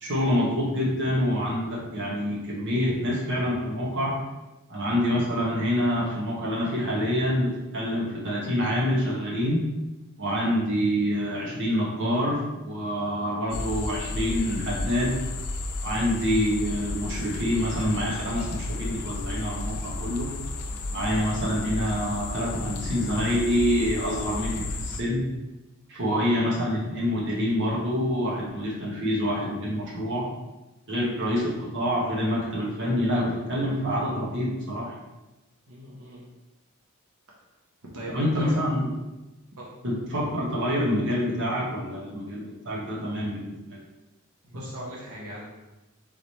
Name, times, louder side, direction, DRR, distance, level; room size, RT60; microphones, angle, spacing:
voice 1, 0.0-4.2 4.7-9.6 10.2-15.2 15.8-20.3 20.9-25.2 25.9-30.3 30.9-34.9 38.1-39.0 39.8-43.8, equal, 55° right, -5 dB, 1.2 m, -26 dB
sound 1, 13.5-25.0, left 2 dB, 90° left, 0.5 m, -33 dB
voice 2, 35.7-36.2 37.9-38.5 39.6-39.7 44.4-45.4, right 1 dB, 80° right, -5 dB, 1.0 m, -38 dB
3.9 x 3.2 x 4.1 m, 1.0 s
head